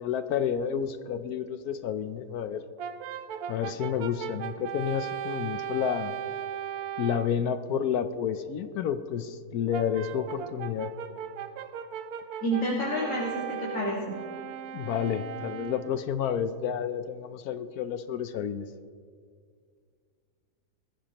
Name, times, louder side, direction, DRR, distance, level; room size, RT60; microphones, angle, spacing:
voice 1, 0.0-2.6 3.5-6.1 7.0-10.9 14.7-18.7, left 8 dB, 70° left, 11 dB, 1.1 m, -30 dB
Brass instrument, 2.8-7.4 9.7-16.1, right 9 dB, 70° right, 1.1 m, -37 dB
voice 2, 12.4-14.1, equal, 50° left, -6 dB, 2.3 m, -29 dB
21.0 x 15.0 x 3.0 m, 2.1 s
omnidirectional pair, 1.7 m